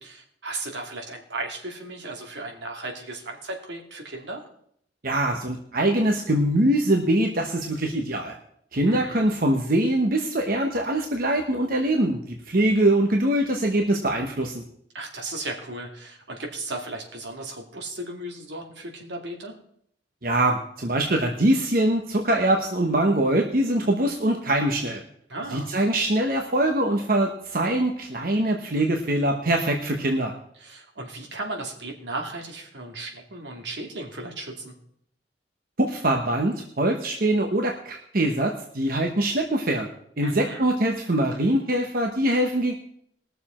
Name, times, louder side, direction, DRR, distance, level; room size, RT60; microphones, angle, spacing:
voice 1, 0.0-4.4 8.9-9.3 14.9-19.6 25.3-25.7 30.6-34.7 40.2-40.6, right 2 dB, 85° right, 1 dB, 2.5 m, -35 dB
voice 2, 5.0-8.4 8.7-14.6 20.2-25.0 25.5-30.3 35.8-39.9 40.2-42.7, right 1 dB, 55° right, 2 dB, 1.2 m, -23 dB
20.5 x 6.9 x 4.4 m, 0.69 s
head